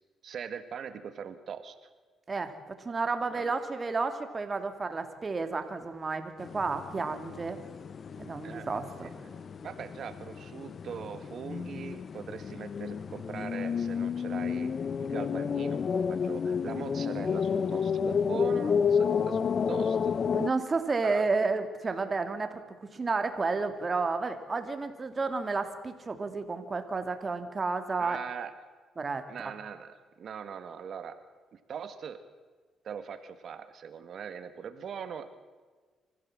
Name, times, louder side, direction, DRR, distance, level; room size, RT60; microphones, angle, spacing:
voice 1, 0.2-1.8 3.3-3.5 8.4-8.7 9.0-14.7 15.0-20.1 21.0-21.2 28.0-28.5 29.3-31.2 31.5-32.2 32.8-35.4, right 7 dB, 60° right, 10 dB, 1.6 m, -41 dB
voice 2, 2.3-7.6 8.2-9.1 20.3-28.2 29.0-29.2, right 4 dB, 30° right, 8 dB, 2.4 m, -31 dB
sound 1, 6.4-20.5, left 6 dB, 45° left, 0.5 m, -31 dB
25.0 x 15.5 x 7.6 m, 1.4 s
cardioid pair, 90°, 0 cm